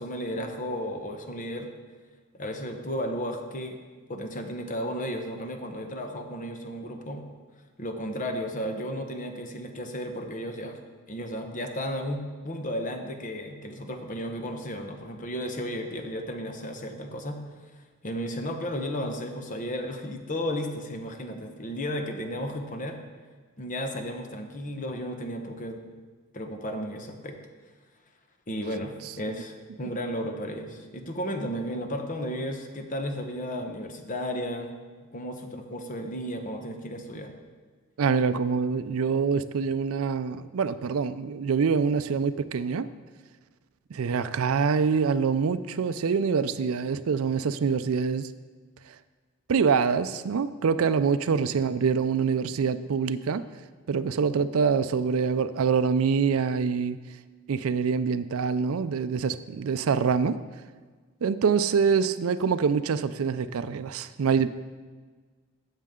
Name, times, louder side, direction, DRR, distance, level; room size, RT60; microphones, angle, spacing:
voice 1, 0.0-1.7 2.4-3.8 4.1-7.3 7.8-10.8 11.1-17.7 18.0-23.0 23.6-25.8 26.3-27.4 28.5-34.7 35.1-37.3 51.3-51.4, equal, 35° left, 5 dB, 1.0 m, -34 dB
voice 2, 38.0-42.9 43.9-48.3 49.5-53.4 53.9-57.0 57.5-60.4 61.2-64.5, right 6 dB, 75° right, 13 dB, 0.4 m, -25 dB
13.0 x 7.3 x 3.7 m, 1.5 s
head